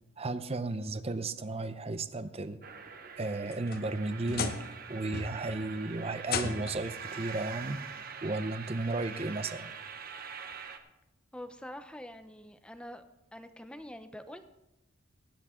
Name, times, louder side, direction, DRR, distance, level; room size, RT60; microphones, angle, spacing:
voice 1, 0.2-2.6 3.2-7.8 8.2-9.7, right 2 dB, 30° right, 12 dB, 0.6 m, -34 dB
sound 1, 2.6-10.8, right 6 dB, 50° right, 1.1 m, -44 dB
sound 2, 3.2-4.8 5.1-5.6 6.2-6.9 8.1-8.2 8.8-8.9 10.5-10.6, left 5 dB, 50° left, 1.0 m, -36 dB
voice 2, 11.3-13.0 13.3-14.5, left 1 dB, 5° left, 9 dB, 0.8 m, -45 dB
18.5 x 10.0 x 3.8 m, 0.90 s
head